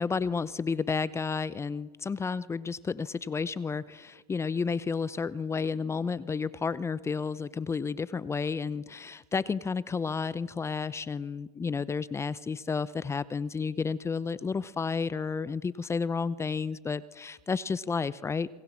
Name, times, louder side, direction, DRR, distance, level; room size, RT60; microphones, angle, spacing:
voice 1, 0.0-18.5, left 5 dB, 15° left, 19 dB, 0.7 m, -31 dB
26.5 x 23.5 x 7.4 m, 1.4 s
hypercardioid pair, 110°, 20 cm